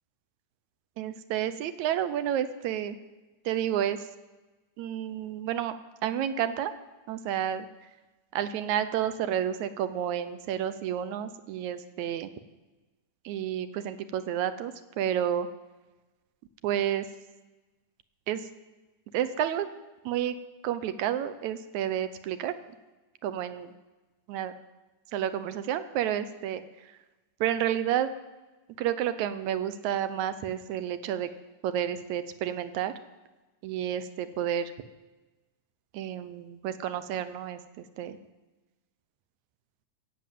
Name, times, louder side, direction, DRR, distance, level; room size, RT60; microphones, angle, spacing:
voice 1, 1.0-3.0 3.5-4.1 4.8-5.7 6.0-6.7 7.1-7.7 8.3-12.3 13.3-15.5 16.6-17.1 18.3-18.5 19.1-19.7 20.1-20.4 20.6-22.5 23.2-23.7 24.3-24.5 25.1-26.9 27.4-28.1 28.8-31.3 31.6-32.9 33.6-34.7 35.9-38.2, right 10 dB, 75° right, 11 dB, 2.0 m, -30 dB
17.0 x 7.7 x 7.5 m, 1.2 s
omnidirectional pair, 3.5 m